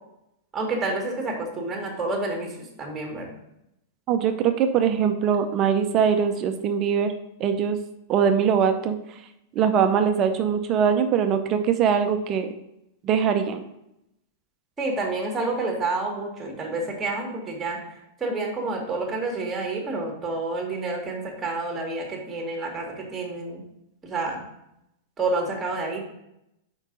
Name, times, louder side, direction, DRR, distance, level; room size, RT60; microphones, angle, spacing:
voice 1, 0.5-3.3 14.8-23.6 24.0-24.4 25.2-26.1, right 3 dB, 20° right, 1 dB, 1.9 m, -29 dB
voice 2, 4.1-7.1 7.4-7.8 8.1-9.0 9.5-12.5 13.0-13.6, right 7 dB, 40° right, 7 dB, 0.7 m, -22 dB
4.8 x 4.5 x 5.2 m, 0.83 s
hypercardioid pair, 105°, 0 cm